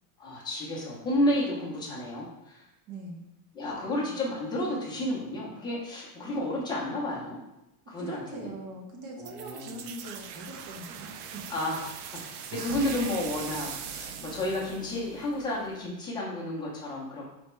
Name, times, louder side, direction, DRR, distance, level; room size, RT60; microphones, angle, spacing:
voice 1, 0.2-2.6 3.5-7.4 7.9-8.5 9.2-9.8 11.5-17.3, left 1 dB, 10° left, -5 dB, 0.7 m, -31 dB
voice 2, 2.9-3.2 8.0-11.5, right 1 dB, 40° right, 0 dB, 0.9 m, -42 dB
sound 1, 9.2-15.9, right 7 dB, 70° right, 0.6 m, -41 dB
4.1 x 3.5 x 3.1 m, 0.93 s
supercardioid pair, 165°, 47 cm